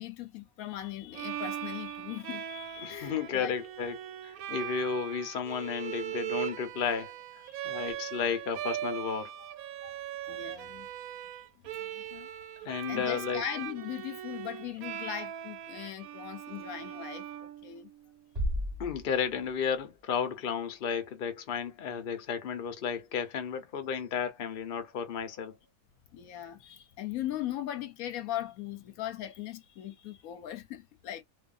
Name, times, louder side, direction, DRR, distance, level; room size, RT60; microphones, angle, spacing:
voice 1, 0.0-3.5 7.5-7.6 9.8-10.0 10.3-10.9 11.8-12.0 12.3-12.4 12.9-17.9 26.1-31.2, left 12 dB, 80° left, 1.0 m, -39 dB
Bowed string instrument, 1.1-18.0, right 11 dB, 80° right, 1.0 m, -40 dB
voice 2, 2.8-9.4 12.1-12.3 12.6-13.4 18.8-25.6, left 6 dB, 50° left, 0.8 m, -33 dB
sound 1, 18.3-20.3, equal, 30° right, 1.2 m, -35 dB
2.6 x 2.5 x 2.4 m
omnidirectional pair, 1.5 m